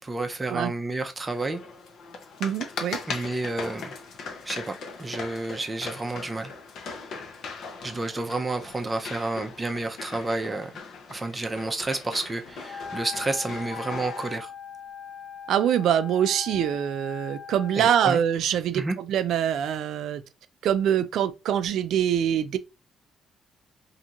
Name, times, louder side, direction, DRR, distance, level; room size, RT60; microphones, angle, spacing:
voice 1, 0.0-1.6 3.1-3.9 4.4-6.5 7.4-10.7 11.1-14.5 17.8-18.2 18.7-19.0, right 2 dB, 20° right, 0.5 m, -30 dB
sound 1, 1.2-14.3, left 4 dB, 65° left, 0.6 m, -39 dB
voice 2, 2.4-3.0 15.5-20.2 20.6-22.6, right 9 dB, 75° right, 0.3 m, -24 dB
Wind instrument woodwind instrument, 12.6-18.2, left 6 dB, 85° left, 1.2 m, -40 dB
2.9 x 2.6 x 2.4 m
cardioid pair, 125°, 0 cm